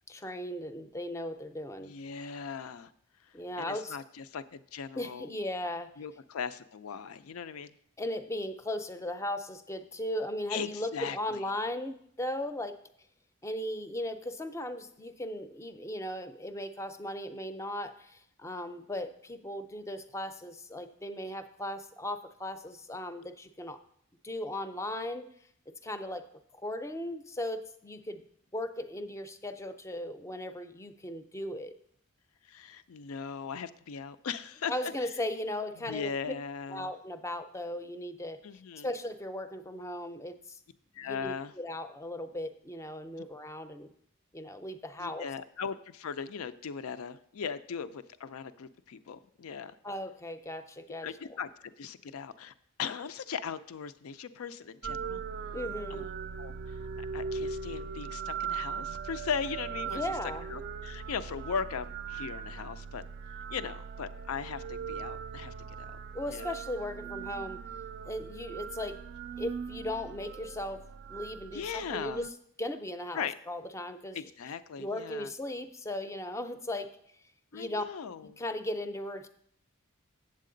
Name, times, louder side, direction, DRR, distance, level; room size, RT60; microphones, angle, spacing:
voice 1, 0.1-1.9 3.3-4.0 5.0-5.9 8.0-12.8 13.4-23.8 24.2-25.3 25.8-26.2 26.5-28.2 28.5-31.7 34.7-36.1 36.7-38.4 38.8-40.6 41.0-43.9 44.3-45.3 49.8-51.4 55.5-56.1 59.9-60.4 66.1-67.6 68.1-69.0 69.4-70.8 71.1-72.3 72.6-74.2 74.8-76.9 77.5-77.8 78.4-79.3, left 1 dB, 15° left, 9 dB, 0.5 m, -37 dB
voice 2, 1.8-2.9 3.6-5.3 6.0-7.7 10.5-11.4 32.5-34.9 35.8-36.9 38.4-38.9 40.9-41.5 45.0-49.7 51.0-52.5 52.8-55.2 55.9-56.1 56.4-60.0 60.5-63.0 63.5-65.5 66.3-66.5 71.5-72.2 73.1-73.3 74.1-75.3 77.5-78.3, left 6 dB, 85° left, 14 dB, 0.4 m, -38 dB
sound 1, 54.8-72.3, right 6 dB, 50° right, 0.4 m, -40 dB
8.2 x 7.5 x 3.8 m, 0.67 s
head